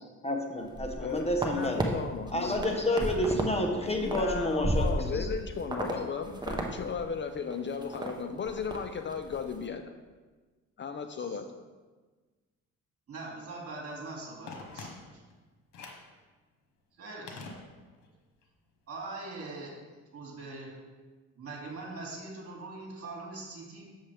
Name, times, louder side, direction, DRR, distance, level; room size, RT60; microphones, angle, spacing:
voice 1, 0.2-1.9 2.3-5.3, left 1 dB, 20° left, 3 dB, 0.9 m, -30 dB
sound 1, 0.7-1.9 2.3-3.5 3.8-5.3 5.7-5.9 6.2-6.7 7.0-7.1 7.5-8.1 8.5-8.8 9.1-9.4, right 1 dB, 15° right, 1.0 m, -33 dB
voice 2, 1.0-3.1 4.0-9.9 10.8-11.5, left 6 dB, 40° left, 7 dB, 0.6 m, -36 dB
voice 3, 13.1-15.1 17.0-17.4 18.9-19.7 20.1-20.7 21.4-23.9, right 3 dB, 50° right, -2 dB, 2.6 m, -42 dB
Telephone, 14.5-15.3 15.7-16.1 17.3-18.1 18.4-18.5, left 4 dB, 85° left, 1.2 m, -45 dB
7.3 x 7.2 x 3.4 m, 1.3 s
cardioid pair, 90°, 30 cm